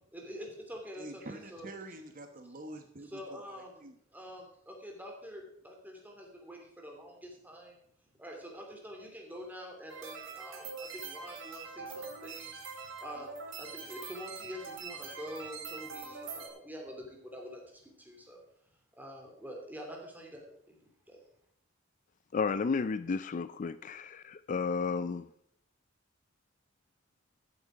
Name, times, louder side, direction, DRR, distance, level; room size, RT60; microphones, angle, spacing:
voice 1, 0.1-1.7 3.0-3.7 4.1-7.8 8.2-13.3 13.6-18.4 19.0-20.8 21.1-21.2, equal, 10° right, 1 dB, 2.9 m, -46 dB
voice 2, 0.9-3.9, right 2 dB, 45° right, 6 dB, 1.1 m, -47 dB
sound 1, 9.9-16.5, right 5 dB, 70° right, 2.6 m, -43 dB
voice 3, 22.3-25.3, left 5 dB, 40° left, 14 dB, 0.4 m, -32 dB
14.0 x 8.0 x 5.0 m, 0.71 s
head